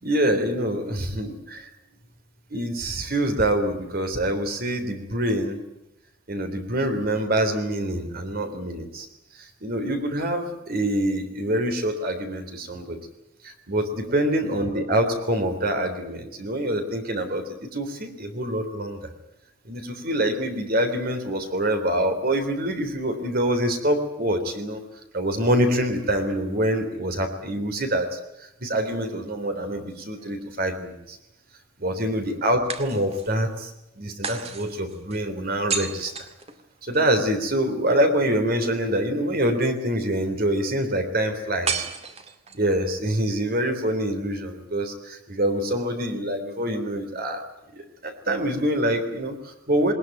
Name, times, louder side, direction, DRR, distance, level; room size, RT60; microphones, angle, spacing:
voice 1, 0.0-1.7 2.5-5.6 6.3-9.1 9.3-13.0 13.4-19.0 19.7-24.8 25.1-28.2 28.6-31.2 31.8-36.1 36.8-41.9 42.5-47.4 47.7-49.9, right 1 dB, 50° right, 7 dB, 3.6 m, -25 dB
sound 1, 29.6-30.7 32.7-33.5 34.2-37.1 41.7-42.7, right 5 dB, 30° right, 2.1 m, -33 dB
21.0 x 20.5 x 9.3 m, 0.87 s
head